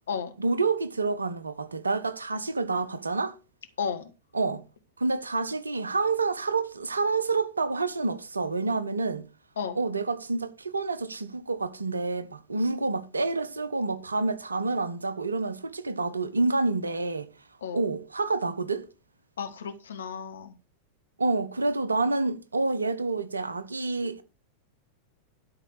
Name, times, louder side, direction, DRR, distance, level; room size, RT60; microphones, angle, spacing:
voice 1, 0.4-3.4 4.3-4.6 5.0-9.3 9.7-17.3 17.7-18.9 21.2-24.2, right 3 dB, 75° right, 1.0 m, -28 dB
voice 2, 3.8-4.1 9.6-9.8 17.6-17.8 19.4-20.6, left 6 dB, 65° left, 1.4 m, -33 dB
12.0 x 4.9 x 6.5 m
figure-of-eight pair, 90°, 0 cm